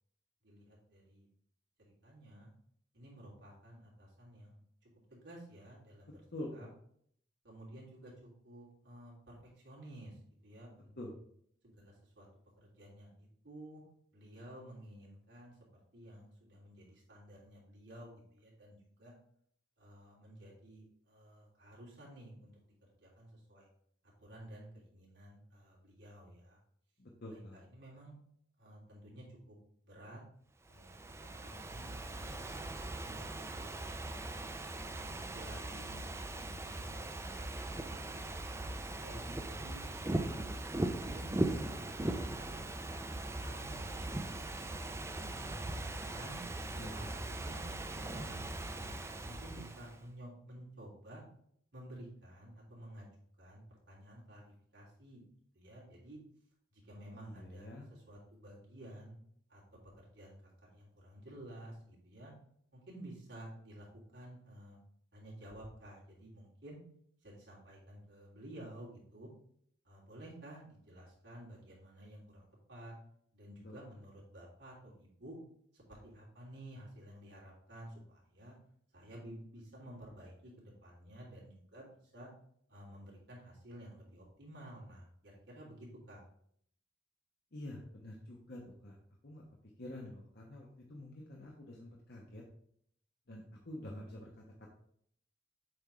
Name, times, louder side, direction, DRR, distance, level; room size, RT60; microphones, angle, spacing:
voice 1, 0.4-1.3 2.0-2.5 2.9-6.2 6.5-6.7 7.4-10.2 10.4-10.9 11.6-12.3 12.6-13.8 14.1-15.6 15.9-19.2 19.8-22.6 23.0-23.7 24.2-26.6 27.3-28.1 28.6-29.6 29.8-30.2 30.7-32.4 33.0-33.8 35.1-38.3 39.0-40.4 40.8-41.3 41.6-44.9 45.4-46.4 46.9-48.4 49.2-51.2 51.7-53.1 53.4-55.2 55.5-56.2 56.7-59.2 59.5-59.6 60.0-62.3 62.7-63.9 64.1-64.8 65.1-66.8 67.2-69.3 69.8-72.9 73.3-75.4 75.7-78.6 78.9-81.9 82.1-82.3 82.7-86.2, right 1 dB, 60° right, -5 dB, 3.0 m, -53 dB
voice 2, 6.3-6.7 11.0-11.2 27.0-27.6 46.7-47.1 57.1-57.9 73.6-73.8 87.5-89.0 89.2-89.4 89.8-92.4 93.3-94.3, left 1 dB, 55° left, -2 dB, 1.0 m, -47 dB
Ocean / Fireworks, 30.7-50.0, right 1 dB, 15° right, 0.5 m, -40 dB
7.7 x 3.6 x 4.6 m, 0.66 s
head